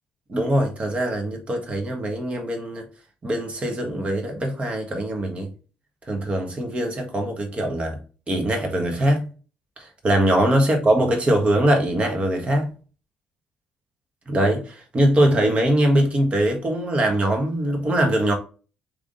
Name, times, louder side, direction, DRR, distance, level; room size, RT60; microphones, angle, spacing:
voice 1, 0.3-2.9 3.2-5.5 6.1-8.0 8.3-9.3 9.8-12.7 14.3-18.3, right 1 dB, 35° right, 1.6 m, -22 dB
3.7 x 3.4 x 3.9 m
hypercardioid pair, 45°, 4 cm